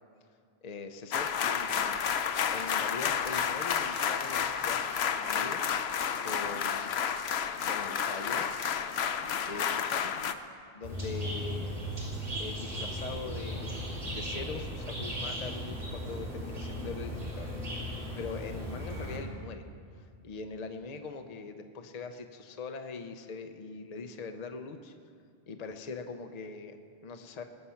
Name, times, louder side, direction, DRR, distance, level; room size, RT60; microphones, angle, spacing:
voice 1, 0.6-2.0 2.5-5.6 6.2-7.1 7.7-8.5 9.5-10.2 10.7-11.8 12.4-17.5 18.2-19.6 20.2-24.9 25.5-27.4, left 4 dB, 45° left, 7 dB, 0.8 m, -42 dB
sound 1, 1.1-10.3, left 7 dB, 80° left, 0.9 m, -31 dB
sound 2, 10.8-19.2, equal, 65° right, 4.0 m, -37 dB
20.0 x 7.7 x 5.7 m, 2.2 s
omnidirectional pair, 1.1 m